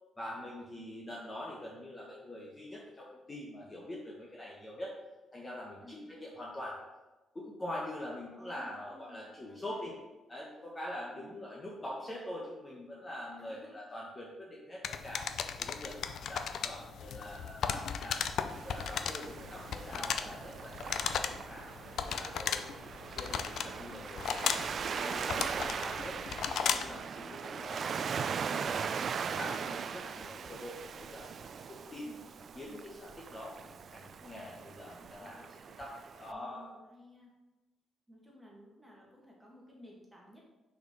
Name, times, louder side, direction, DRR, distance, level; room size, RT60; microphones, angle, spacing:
voice 1, 0.2-4.9 5.3-6.8 7.3-9.9 10.3-15.3 15.6-18.3 18.6-22.7 23.0-26.2 26.6-28.6 29.4-32.1 32.5-35.4 35.8-36.7, left 1 dB, 20° left, -4 dB, 1.1 m, -44 dB
voice 2, 5.8-6.1 8.3-9.9 11.1-11.5 13.4-13.8 31.9-32.3 35.0-35.5 36.3-37.3 38.1-40.4, equal, 5° right, -4 dB, 1.9 m, -55 dB
sound 1, 14.8-27.0, left 7 dB, 65° left, 0.4 m, -36 dB
Waves surf, 18.5-36.3, right 6 dB, 45° right, 0.3 m, -40 dB
5.7 x 4.5 x 5.3 m, 1.1 s
cardioid pair, 130°, 0 cm